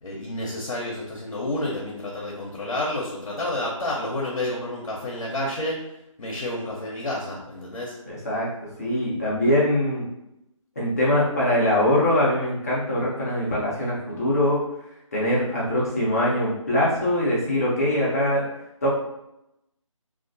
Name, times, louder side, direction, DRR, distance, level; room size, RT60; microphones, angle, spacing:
voice 1, 0.0-5.8 6.2-7.9, left 1 dB, 90° left, -3 dB, 0.7 m, -30 dB
voice 2, 8.0-8.5 8.8-10.1 10.8-14.6 15.1-18.4 18.8-18.9, left 1 dB, 30° left, -6 dB, 0.6 m, -22 dB
2.3 x 2.2 x 2.5 m, 0.85 s
figure-of-eight pair, 165°, 17 cm